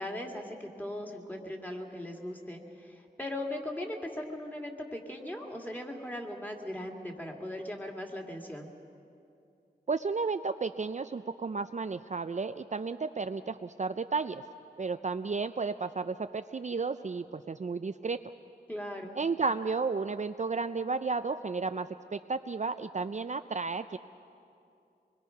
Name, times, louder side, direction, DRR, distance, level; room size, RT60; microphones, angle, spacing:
voice 1, 0.0-8.7 18.7-19.1, left 1 dB, 10° left, 1 dB, 2.2 m, -39 dB
voice 2, 9.9-14.4 14.8-18.2 19.1-24.0, right 4 dB, 45° right, 9 dB, 0.4 m, -33 dB
24.5 x 22.0 x 5.8 m, 2.6 s
wide cardioid pair, 80°, 17 cm